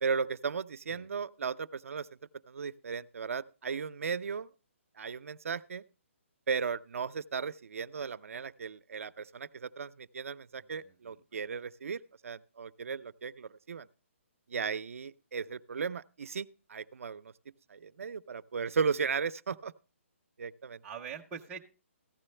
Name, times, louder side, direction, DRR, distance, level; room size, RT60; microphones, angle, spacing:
voice 1, 0.0-2.1 2.5-4.5 5.0-5.8 6.5-13.9 14.5-17.3 17.7-19.7 20.4-20.8, right 5 dB, 80° right, 0.5 m, -36 dB
voice 2, 10.6-11.2 15.4-15.5 20.8-21.6, right 7 dB, 10° right, 0.5 m, -45 dB
15.0 x 11.0 x 3.2 m
hypercardioid pair, 175°, 7 cm